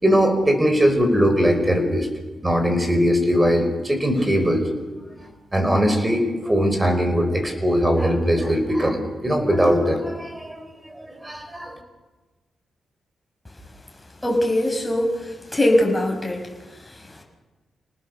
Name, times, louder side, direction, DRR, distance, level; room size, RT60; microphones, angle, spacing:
voice 1, 0.0-2.1 2.4-4.8 5.2-10.6 10.9-11.8, equal, 15° right, 7 dB, 5.3 m, -20 dB
voice 2, 14.2-15.1 15.5-16.4, left 1 dB, 15° left, 1 dB, 6.2 m, -20 dB
28.0 x 19.0 x 7.0 m, 1.2 s
cardioid pair, 65°, 0 cm